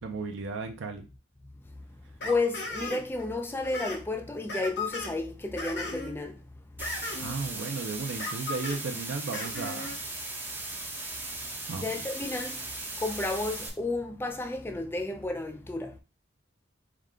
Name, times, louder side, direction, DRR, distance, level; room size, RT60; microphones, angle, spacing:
voice 1, 0.0-1.1 7.2-10.0 11.7-11.9, right 4 dB, 90° right, 0.5 m, -35 dB
sound 1, 2.2-3.2 3.5-4.0 4.5-5.1 5.6-6.1 6.8-7.4 8.2-8.8 9.3-10.0, left 2 dB, 60° left, 1.3 m, -36 dB
voice 2, 2.2-6.4 11.8-12.6 13.0-15.9, left 2 dB, 10° left, 0.3 m, -32 dB
sound 2, 6.8-13.7, right 2 dB, 10° right, 0.8 m, -38 dB
4.7 x 2.2 x 3.6 m
head